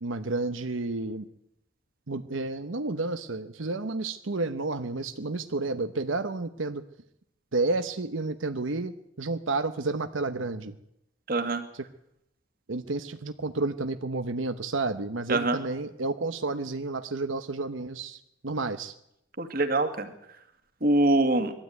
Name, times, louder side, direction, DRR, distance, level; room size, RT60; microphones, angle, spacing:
voice 1, 0.0-1.3 2.1-6.8 7.5-10.7 11.7-11.8 12.7-18.9, right 3 dB, 90° right, 9 dB, 1.0 m, -31 dB
voice 2, 11.3-11.6 15.3-15.6 19.4-20.1 20.8-21.5, right 2 dB, 50° right, 7 dB, 2.1 m, -24 dB
21.0 x 13.0 x 9.4 m, 0.81 s
head